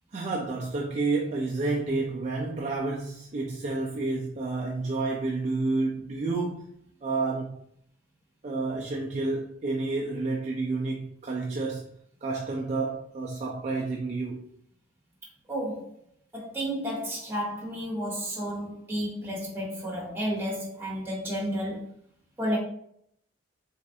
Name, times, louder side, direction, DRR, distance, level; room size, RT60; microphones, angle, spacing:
voice 1, 0.1-6.7 7.0-7.6 8.4-11.9 12.2-14.5, right 3 dB, 35° right, 0.4 m, -30 dB
voice 2, 15.5-15.9 16.3-21.9 22.4-22.6, equal, 10° right, 1.2 m, -32 dB
3.4 x 3.1 x 2.6 m
head